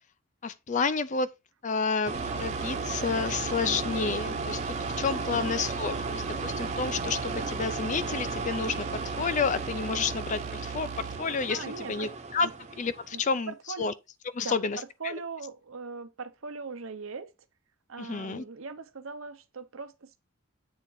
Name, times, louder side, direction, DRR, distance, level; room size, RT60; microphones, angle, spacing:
voice 1, 0.4-1.3 1.6-12.5 12.8-13.5 13.8-13.9 14.3-15.1 18.0-18.4, left 5 dB, 35° left, 0.4 m, -30 dB
sound 1, 2.0-13.3, right 3 dB, 30° right, 0.8 m, -34 dB
sound 2, 2.1-11.2, right 10 dB, 85° right, 0.3 m, -41 dB
voice 2, 11.5-12.1 12.4-12.5 13.1-13.2 13.5-13.9 14.4-17.3 17.9-20.2, right 4 dB, 70° right, 0.9 m, -40 dB
8.2 x 3.7 x 4.6 m
head